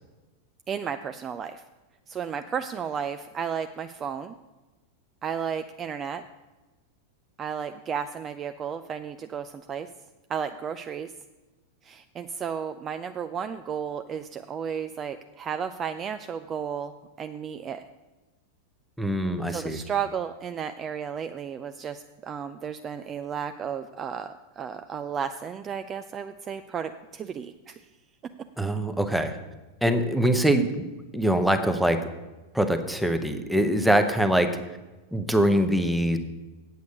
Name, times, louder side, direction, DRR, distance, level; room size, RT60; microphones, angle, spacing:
voice 1, 0.7-1.6 2.1-4.3 5.2-6.2 7.4-9.9 10.3-11.1 11.8-17.9 19.5-27.8, right 7 dB, 25° right, 9 dB, 0.4 m, -33 dB
voice 2, 19.0-19.8 28.6-29.4 29.8-30.8 31.1-32.0 32.5-34.5 35.1-36.2, right 1 dB, ahead, 7 dB, 0.9 m, -23 dB
8.3 x 7.9 x 6.6 m, 1.2 s
figure-of-eight pair, 90°, 0 cm